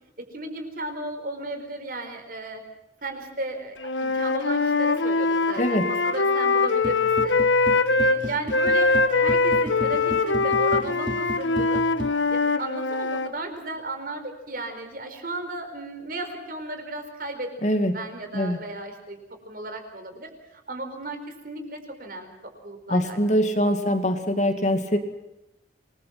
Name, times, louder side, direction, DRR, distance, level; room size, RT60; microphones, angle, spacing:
voice 1, 0.2-2.6 3.0-7.4 7.9-11.8 12.3-19.2 19.4-23.2 23.6-23.7, right 2 dB, 50° right, 6 dB, 4.5 m, -35 dB
Wind instrument woodwind instrument, 3.8-8.2 8.5-13.3, left 3 dB, 85° left, 1.5 m, -22 dB
voice 2, 5.6-5.9 17.6-18.0 18.3-18.6 22.9-25.0, equal, 40° left, 6 dB, 2.4 m, -23 dB
sound 1, 6.8-12.1, right 1 dB, 25° right, 0.9 m, -35 dB
27.5 x 21.0 x 6.0 m, 0.89 s
head